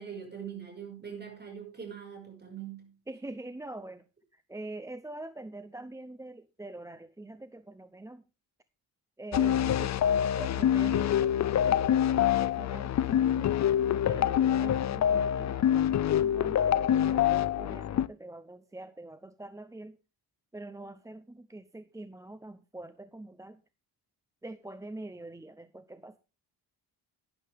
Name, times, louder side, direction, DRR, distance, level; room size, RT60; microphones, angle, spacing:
voice 1, 0.0-3.0, right 8 dB, 25° right, 2 dB, 5.4 m, -42 dB
voice 2, 3.1-4.1 4.3-8.3 9.2-10.0 10.4-13.5 14.0-20.0 20.5-23.6 24.4-26.2, right 2 dB, 10° right, 12 dB, 0.5 m, -44 dB
sound 1, 9.3-18.1, left 10 dB, 40° left, 0.5 m, -26 dB
12.0 x 10.5 x 3.5 m, 0.30 s
cardioid pair, 130°, 42 cm